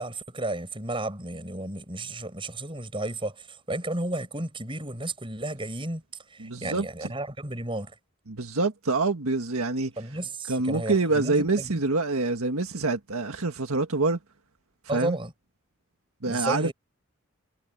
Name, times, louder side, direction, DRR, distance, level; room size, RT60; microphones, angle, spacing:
voice 1, 0.0-6.0 6.3-7.9 10.0-11.8 14.9-15.3 16.3-16.7, right 2 dB, 25° right, 6.5 m, -33 dB
voice 2, 6.4-7.1 8.3-9.9 10.5-14.2 14.9-15.2 16.2-16.7, right 3 dB, 80° right, 1.7 m, -26 dB
head